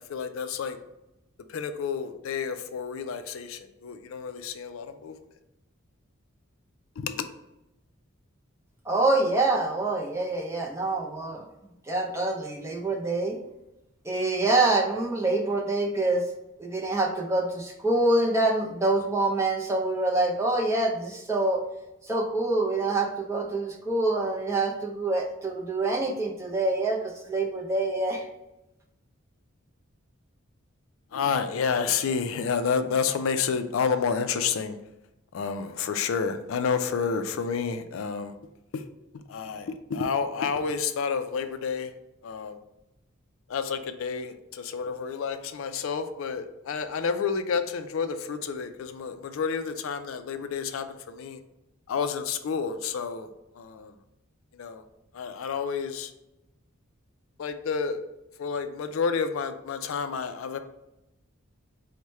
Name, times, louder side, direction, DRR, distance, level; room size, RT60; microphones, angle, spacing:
voice 1, 0.1-0.8 1.5-5.2 7.0-7.3 31.1-34.8 35.3-38.3 38.7-38.8 39.1-41.9 42.2-42.6 43.5-51.4 51.9-53.9 54.5-54.8 55.1-56.1 57.4-58.0 58.4-60.6, left 6 dB, 75° left, 9 dB, 0.4 m, -30 dB
voice 2, 8.9-11.5 11.9-13.4 14.0-16.2 16.6-21.6 22.1-28.3, right 2 dB, 15° right, 0 dB, 0.5 m, -26 dB
4.7 x 2.1 x 4.2 m, 0.93 s
head